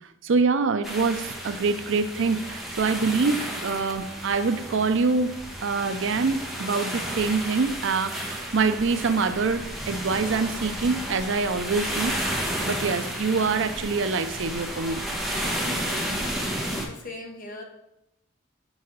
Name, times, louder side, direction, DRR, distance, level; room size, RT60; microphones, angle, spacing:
voice 1, 0.2-5.3 5.6-12.2 12.7-15.0, right 4 dB, 65° right, 11 dB, 0.5 m, -25 dB
sound 1, 0.8-16.9, equal, ahead, 1.1 m, -32 dB
voice 2, 16.2-17.6, left 2 dB, 45° left, 2 dB, 1.4 m, -41 dB
6.3 x 4.7 x 6.3 m, 0.85 s
head